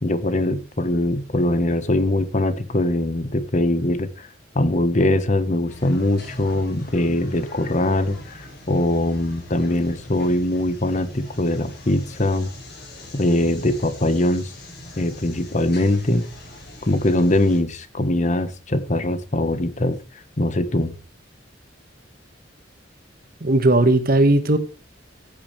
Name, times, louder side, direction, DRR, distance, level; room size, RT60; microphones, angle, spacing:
voice 1, 0.0-4.3 4.5-12.5 13.1-14.5 15.0-16.3 16.8-20.0 20.4-20.9, left 1 dB, 40° left, 1.1 m, -22 dB
sound 1, 5.7-17.6, left 1 dB, 55° left, 7.0 m, -42 dB
voice 2, 23.4-24.6, right 2 dB, 50° right, 1.6 m, -17 dB
14.5 x 8.7 x 3.3 m
head